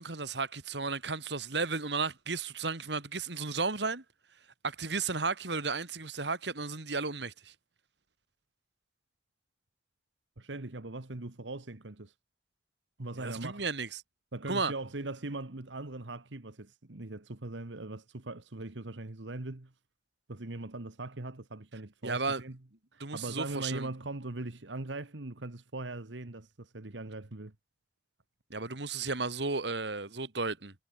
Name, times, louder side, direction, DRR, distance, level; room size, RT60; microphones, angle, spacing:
voice 1, 0.0-4.0 4.6-7.5 13.2-13.9 14.5-14.7 22.0-22.4 23.0-23.9 28.5-30.7, right 4 dB, 70° right, 2.3 m, -34 dB
voice 2, 10.4-12.1 13.0-13.6 14.3-19.7 20.3-22.6 22.9-27.5, right 2 dB, 85° right, 1.5 m, -40 dB
head